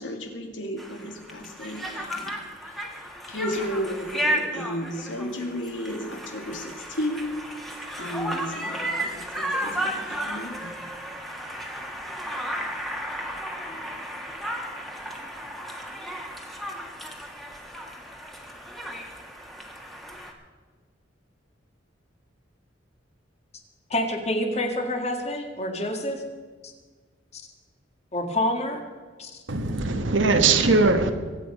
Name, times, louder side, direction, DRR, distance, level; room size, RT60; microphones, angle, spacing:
voice 1, 0.0-2.3 3.3-6.6 7.0-7.3 8.0-9.9 10.3-10.7, equal, 75° left, 4 dB, 2.3 m, -33 dB
Conversation, 0.8-20.3, equal, ahead, 1.7 m, -34 dB
voice 2, 23.9-26.2 27.3-27.4 28.1-28.8 29.2-29.4, left 1 dB, 35° left, 4 dB, 2.0 m, -27 dB
voice 3, 29.5-31.1, right 3 dB, 80° right, 7 dB, 1.4 m, -20 dB
24.0 x 8.8 x 5.5 m, 1.5 s
head